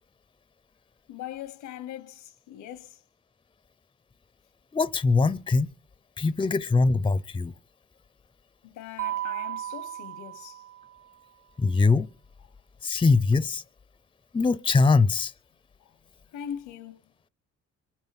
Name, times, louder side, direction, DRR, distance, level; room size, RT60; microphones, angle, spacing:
voice 1, 1.1-3.0 8.6-10.6 16.3-17.0, left 10 dB, 85° left, 1.1 m, -40 dB
voice 2, 4.7-5.7 6.2-7.5 11.6-12.1 12.8-13.6 14.3-15.3, left 4 dB, 15° left, 0.6 m, -22 dB
Mallet percussion, 9.0-11.1, right 13 dB, 30° right, 1.0 m, -35 dB
24.0 x 10.5 x 4.2 m
cardioid pair, 90°, 30 cm